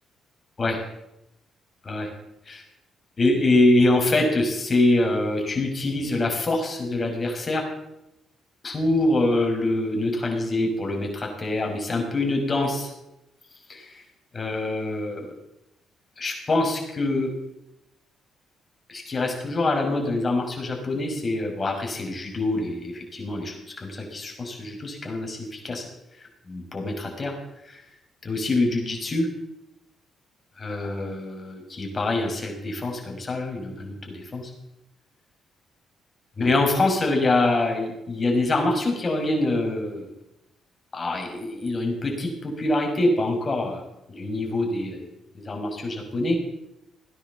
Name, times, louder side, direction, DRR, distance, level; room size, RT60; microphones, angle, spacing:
voice 1, 3.2-7.7 8.6-12.9 13.7-13.9 14.3-15.2 16.2-17.3 18.9-23.5 23.8-25.4 25.6-25.8 26.5-27.3 28.2-29.3 30.6-34.5 36.4-40.0 40.9-43.8 44.1-45.1 45.3-46.4, left 2 dB, 35° left, 2 dB, 5.8 m, -25 dB
17.5 x 10.0 x 7.4 m, 0.87 s
hypercardioid pair, 50°, 0 cm